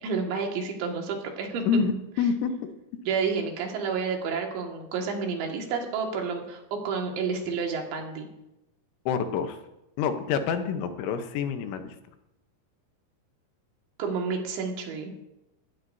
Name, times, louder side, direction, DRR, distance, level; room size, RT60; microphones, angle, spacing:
voice 1, 0.0-1.6 3.0-8.3 14.0-15.1, right 5 dB, 75° right, 1 dB, 4.2 m, -30 dB
voice 2, 2.2-2.5 2.9-3.0 9.1-9.6 10.0-12.0, left 6 dB, 90° left, 8 dB, 3.4 m, -27 dB
19.5 x 15.0 x 2.7 m, 0.92 s
omnidirectional pair, 5.3 m